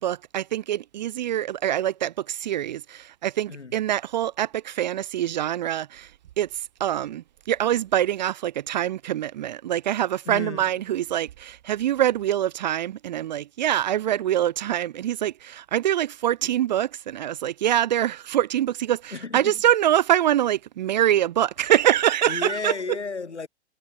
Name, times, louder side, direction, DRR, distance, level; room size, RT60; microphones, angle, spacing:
voice 1, 0.0-6.1 6.4-22.7, right 11 dB, 40° right, 0.5 m, -24 dB
voice 2, 3.5-3.8 10.2-10.7 19.1-19.6 22.2-23.5, left 4 dB, 80° left, 7.8 m, -33 dB
figure-of-eight pair, 120°, 34 cm